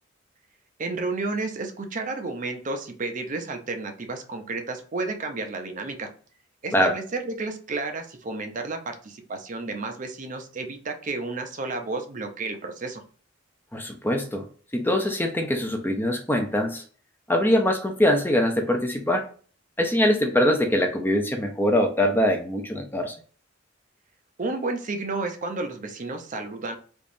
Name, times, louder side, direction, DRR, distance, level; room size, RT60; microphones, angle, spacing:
voice 1, 0.8-6.1 6.6-13.0 24.4-26.8, right 3 dB, 40° right, 5 dB, 0.6 m, -31 dB
voice 2, 13.7-14.5 14.7-16.8 17.3-19.2 19.8-23.2, left 1 dB, 10° left, 4 dB, 0.5 m, -23 dB
3.5 x 2.9 x 2.6 m, 0.42 s
head